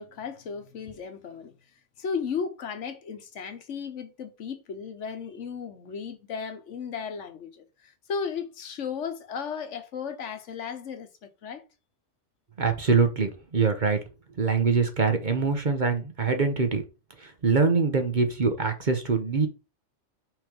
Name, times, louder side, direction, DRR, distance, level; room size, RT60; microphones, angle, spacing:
voice 1, 0.0-1.5 2.0-11.6, left 6 dB, 75° left, 1.3 m, -35 dB
voice 2, 12.6-14.0 14.4-16.8 17.2-19.5, right 5 dB, 45° right, 1.0 m, -24 dB
6.1 x 3.3 x 5.1 m
omnidirectional pair, 1.2 m